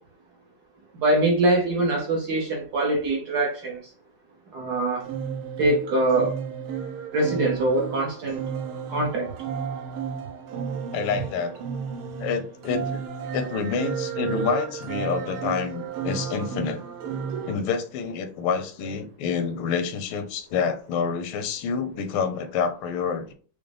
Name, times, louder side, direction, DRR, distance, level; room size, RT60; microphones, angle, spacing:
voice 1, 0.9-3.8 4.5-5.1 5.6-6.4 7.1-8.4 8.9-9.3, right 2 dB, 60° right, 1.1 m, -23 dB
sound 1, 5.0-17.6, right 7 dB, 80° right, 1.4 m, -33 dB
voice 2, 10.9-11.6 12.2-13.0 13.3-16.8 17.5-23.3, left 6 dB, 85° left, 1.5 m, -28 dB
5.0 x 2.0 x 3.2 m
omnidirectional pair, 2.3 m